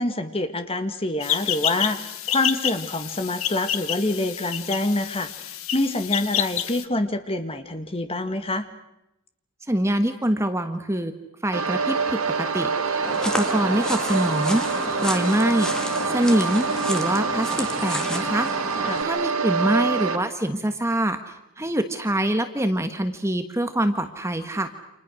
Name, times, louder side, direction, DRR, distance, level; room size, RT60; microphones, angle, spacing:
voice 1, 0.0-8.7 18.8-19.1, left 2 dB, 25° left, 8 dB, 1.8 m, -26 dB
sound 1, 1.2-6.8, left 11 dB, 65° left, 1.4 m, -29 dB
voice 2, 9.7-11.1 11.4-14.6 15.0-15.7 16.1-18.5 19.0-24.7, right 1 dB, 10° right, 7 dB, 1.3 m, -24 dB
sound 2, 11.5-20.2, right 5 dB, 70° right, 1.8 m, -26 dB
sound 3, 13.0-19.0, equal, 5° left, 1.8 m, -32 dB
29.5 x 27.5 x 6.4 m, 0.86 s
head